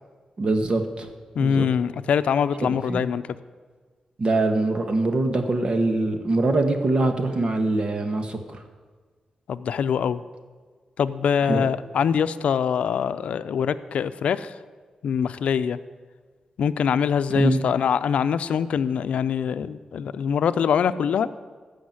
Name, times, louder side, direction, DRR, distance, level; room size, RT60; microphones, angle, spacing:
voice 1, 0.4-1.1 1.4-1.7 2.6-3.1 4.2-8.6 11.4-11.7 17.3-17.6, right 2 dB, 50° right, 6 dB, 1.9 m, -23 dB
voice 2, 1.3-3.2 9.5-10.2 11.0-14.5 15.0-15.8 16.6-21.3, left 7 dB, 80° left, 13 dB, 0.5 m, -23 dB
15.0 x 6.5 x 9.6 m, 1.5 s
cardioid pair, 65°, 2 cm